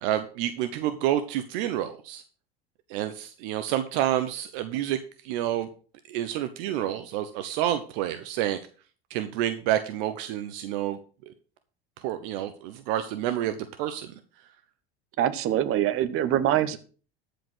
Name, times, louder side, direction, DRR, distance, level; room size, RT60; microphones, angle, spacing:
voice 1, 0.0-2.2 2.9-5.0 5.2-5.7 6.1-8.6 9.1-11.0 12.0-14.1, right 12 dB, 65° right, 10 dB, 1.0 m, -29 dB
voice 2, 15.2-16.8, right 11 dB, 45° right, 13 dB, 1.3 m, -24 dB
14.0 x 5.1 x 6.1 m, 0.40 s
hypercardioid pair, 85°, 30 cm